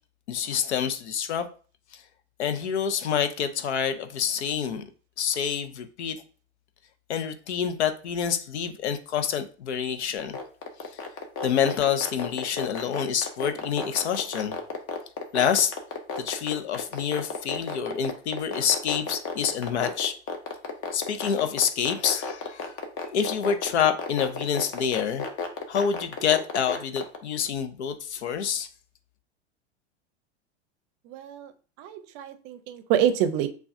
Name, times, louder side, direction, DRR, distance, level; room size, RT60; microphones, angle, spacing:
voice 1, 0.3-1.5 2.4-4.8 5.2-6.2 7.1-10.4 11.4-14.6 15.3-15.7 16.2-20.1 20.9-22.7 23.1-25.3 25.7-28.7, left 8 dB, 80° left, 0.6 m, -27 dB
sound 1, 10.2-27.2, left 5 dB, 40° left, 1.0 m, -32 dB
voice 2, 31.1-31.5 31.8-33.5, right 10 dB, 45° right, 0.6 m, -26 dB
6.8 x 2.3 x 2.5 m
hypercardioid pair, 95°, 34 cm